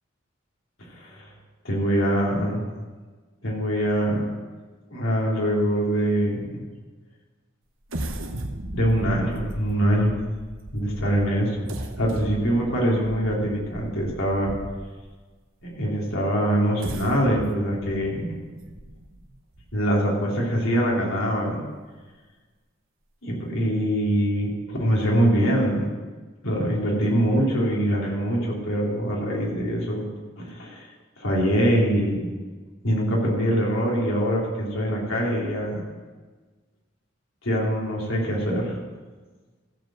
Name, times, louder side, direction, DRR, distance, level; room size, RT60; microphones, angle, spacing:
voice 1, 0.9-1.3 1.6-2.6 3.4-4.3 4.9-6.6 8.7-10.2 10.7-11.7 12.0-14.6 15.6-18.4 19.7-21.6 23.2-25.9 26.4-30.1 30.4-30.9 31.2-32.3 32.8-35.8 37.4-38.8, equal, 75° left, -3 dB, 3.4 m, -23 dB
sound 1, 7.9-15.0 15.6-15.7 16.6-20.1 20.6-20.7 21.1-21.3, right 1 dB, 75° right, 1.1 m, -37 dB
15.0 x 5.2 x 7.6 m, 1.3 s
head